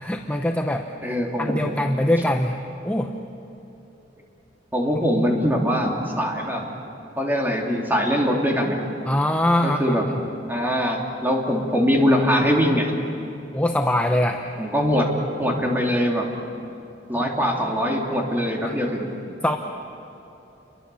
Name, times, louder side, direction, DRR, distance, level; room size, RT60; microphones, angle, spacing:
voice 1, 0.0-2.6 2.8-3.1 9.1-10.2 13.5-14.4 18.6-18.7 19.4-19.6, left 1 dB, 10° left, 3 dB, 0.9 m, -23 dB
voice 2, 1.0-1.7 4.7-6.6 7.2-8.8 9.6-10.0 10.5-12.9 14.6-15.1 15.4-16.3 17.1-19.1, equal, 10° right, -1 dB, 3.1 m, -22 dB
29.5 x 23.5 x 7.1 m, 2.9 s
head